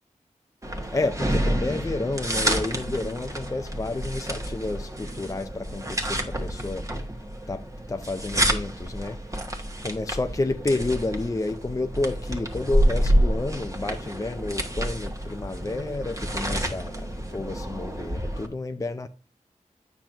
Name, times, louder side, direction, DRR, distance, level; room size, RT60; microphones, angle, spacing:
sound 1, 0.6-18.5, right 1 dB, 25° right, 1.3 m, -28 dB
voice 1, 0.9-6.8 7.5-7.6 7.9-9.2 9.8-19.1, left 2 dB, 25° left, 0.4 m, -30 dB
8.7 x 5.9 x 2.5 m
wide cardioid pair, 55°, 14 cm